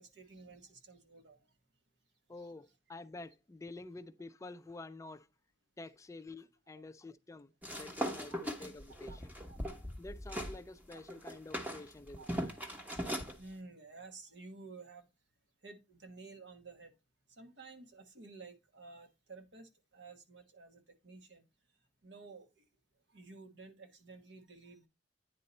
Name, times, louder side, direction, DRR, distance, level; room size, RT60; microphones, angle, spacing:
voice 1, 0.0-1.5 2.4-2.5 6.7-6.8 9.1-9.2 9.5-9.6 12.2-12.3 13.4-15.1 15.6-16.9 17.4-21.4 22.0-22.6 23.1-24.9, right 3 dB, 70° right, 1.2 m, -53 dB
voice 2, 2.3-5.3 5.8-9.3 10.0-12.5, left 2 dB, 15° left, 0.4 m, -49 dB
sound 1, 7.6-10.6 10.9-13.3, equal, 10° right, 0.9 m, -39 dB
9.4 x 4.0 x 4.2 m
head